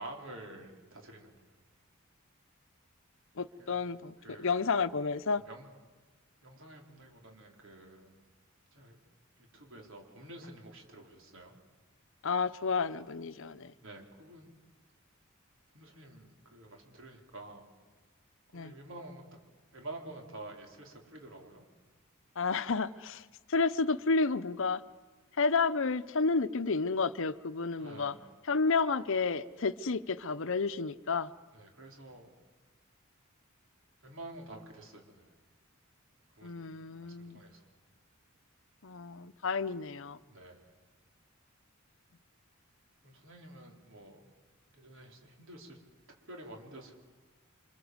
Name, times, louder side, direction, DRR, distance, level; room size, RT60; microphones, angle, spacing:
voice 1, 0.0-1.5 3.6-3.9 4.2-4.8 5.5-5.7 6.4-8.2 8.7-9.0 9.4-11.6 13.8-14.5 15.7-17.7 18.5-19.3 19.7-21.6 27.8-28.3 31.5-32.3 34.0-35.4 36.4-37.7 40.3-40.7 43.0-44.3 44.7-45.8 46.3-46.9, right 2 dB, 65° right, 4.6 m, -49 dB
voice 2, 3.4-5.4 12.2-13.7 18.5-18.7 22.4-24.8 25.4-28.1 28.5-31.3 36.4-37.4 38.8-40.2, left 4 dB, 65° left, 0.8 m, -31 dB
29.0 x 25.0 x 8.0 m
head